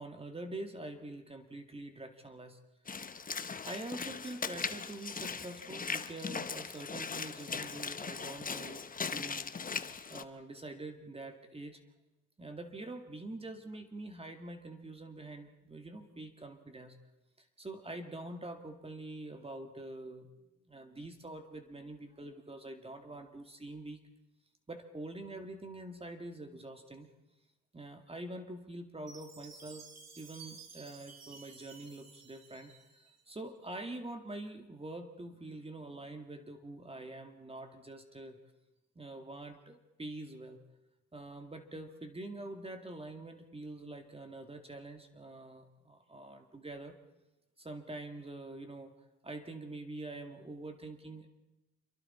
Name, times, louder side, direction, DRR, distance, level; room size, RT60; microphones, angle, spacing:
voice 1, 0.0-2.6 2.9-3.0 3.6-8.8 9.1-9.5 10.1-11.8 12.4-17.0 17.4-20.3 20.7-24.0 24.7-27.1 27.7-29.9 30.2-38.4 39.0-40.6 41.1-47.0 47.6-48.9 49.2-51.3, right 2 dB, 20° right, 6 dB, 2.1 m, -45 dB
Walk footsteps / Splash splatter, 2.9-10.2, left 5 dB, 30° left, 1.0 m, -39 dB
Chime, 29.1-33.2, right 4 dB, 60° right, 3.4 m, -53 dB
27.5 x 23.0 x 4.3 m, 0.99 s
cardioid pair, 90°, 30 cm